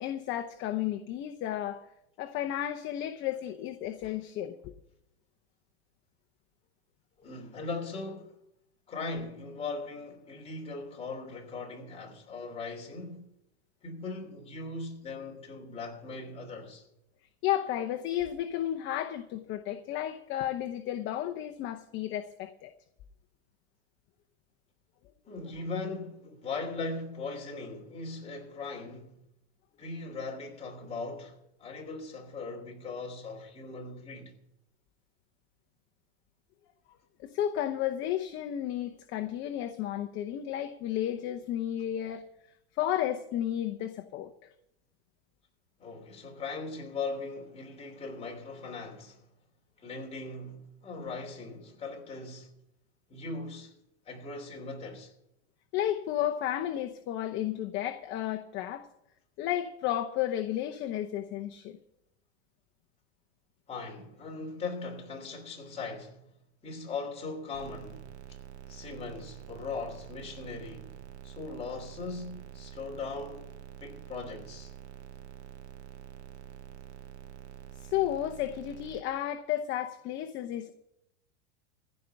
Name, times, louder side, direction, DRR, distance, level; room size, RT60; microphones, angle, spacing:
voice 1, 0.0-1.8 2.2-4.7 17.4-22.7 37.2-42.2 42.8-44.3 55.7-58.9 59.4-61.8 77.8-80.7, left 12 dB, 35° left, 0.8 m, -32 dB
voice 2, 7.2-8.4 8.9-13.3 13.8-16.8 25.2-29.2 29.8-34.3 45.8-49.2 49.8-52.5 53.1-53.7 54.0-55.1 63.7-66.2 66.6-68.0 68.7-70.9 71.2-73.5 73.8-74.7, left 3 dB, 20° left, 3.0 m, -39 dB
sound 1, 67.5-79.0, right 11 dB, 90° right, 1.2 m, -47 dB
15.5 x 5.4 x 9.9 m
supercardioid pair, 130°, 33 cm